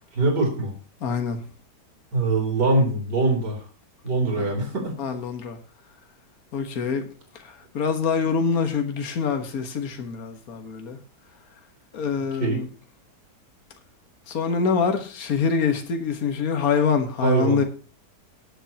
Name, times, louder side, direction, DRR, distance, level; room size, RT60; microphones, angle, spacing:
voice 1, 0.1-0.7 2.1-3.6 4.0-5.0 12.4-12.6 17.2-17.6, right 3 dB, 80° right, 4.2 m, -22 dB
voice 2, 1.0-1.4 4.4-4.5 5.0-5.6 6.5-7.1 7.4-11.0 11.9-12.7 14.3-17.6, left 5 dB, 60° left, 1.9 m, -25 dB
21.0 x 8.2 x 2.9 m
omnidirectional pair, 1.8 m